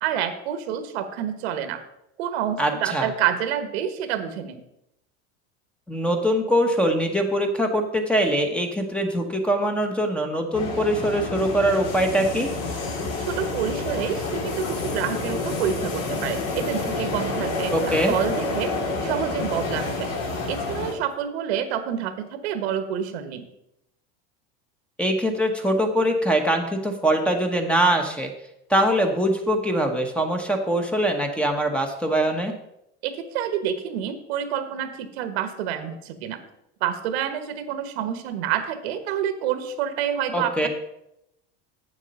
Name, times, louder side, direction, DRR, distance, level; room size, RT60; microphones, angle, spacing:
voice 1, 0.0-1.8 2.2-4.6 13.3-18.7 19.0-20.1 20.5-23.5 33.0-36.4 36.8-40.7, right 9 dB, 90° right, 9 dB, 1.3 m, -28 dB
voice 2, 2.6-3.1 5.9-12.5 17.7-18.1 25.0-28.3 28.7-32.5 40.3-40.7, right 1 dB, 5° left, 4 dB, 1.1 m, -23 dB
sound 1, 10.5-20.9, left 3 dB, 55° left, 2.3 m, -29 dB
8.3 x 7.2 x 5.4 m, 0.82 s
supercardioid pair, 135°, 31 cm